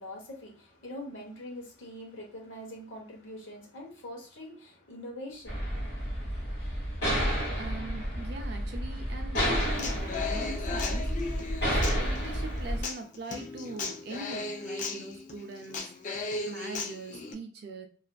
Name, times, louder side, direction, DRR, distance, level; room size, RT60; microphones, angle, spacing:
voice 1, 0.0-5.8, left 1 dB, 80° left, 0.8 m, -43 dB
sound 1, 5.5-12.8, equal, 55° left, 1.1 m, -31 dB
voice 2, 7.6-15.9 16.4-17.9, right 2 dB, 55° right, 0.4 m, -42 dB
Human voice / Acoustic guitar, 9.3-17.3, left 4 dB, 40° left, 0.3 m, -37 dB
2.4 x 2.4 x 2.2 m
head